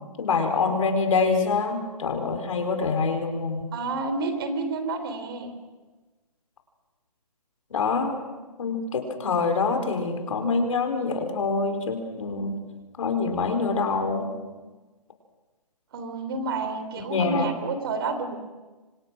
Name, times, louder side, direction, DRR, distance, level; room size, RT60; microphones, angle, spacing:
voice 1, 0.2-3.7 7.7-8.2 8.6-12.6 13.0-14.3 17.1-17.5, left 4 dB, 55° left, 6 dB, 4.7 m, -25 dB
voice 2, 3.7-5.5 15.9-18.4, right 3 dB, 35° right, 8 dB, 3.4 m, -29 dB
28.0 x 26.0 x 6.3 m, 1.2 s
hypercardioid pair, 165°, 21 cm